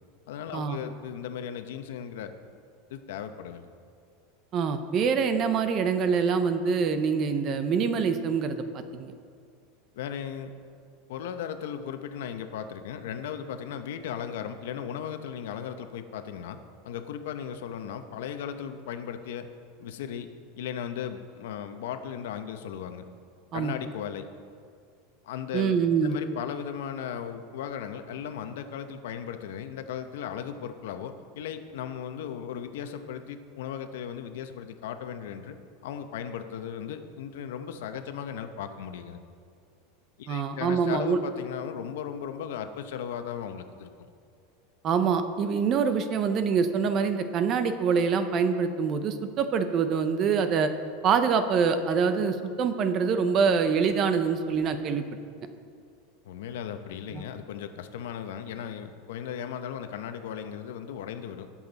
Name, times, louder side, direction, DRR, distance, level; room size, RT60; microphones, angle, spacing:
voice 1, 0.3-2.3 2.9-3.7 9.9-10.5 11.1-16.6 16.8-19.5 19.8-20.3 20.6-23.0 23.5-24.3 25.2-35.6 35.8-39.2 40.2-44.1 56.2-61.5, left 8 dB, 70° left, 9 dB, 0.8 m, -36 dB
voice 2, 4.5-9.1 23.5-23.7 25.5-26.2 40.3-41.2 44.8-50.7 51.0-55.0 57.1-57.2, right 6 dB, 25° right, 9 dB, 0.6 m, -25 dB
19.5 x 7.3 x 4.1 m, 2.3 s
supercardioid pair, 175°, 0 cm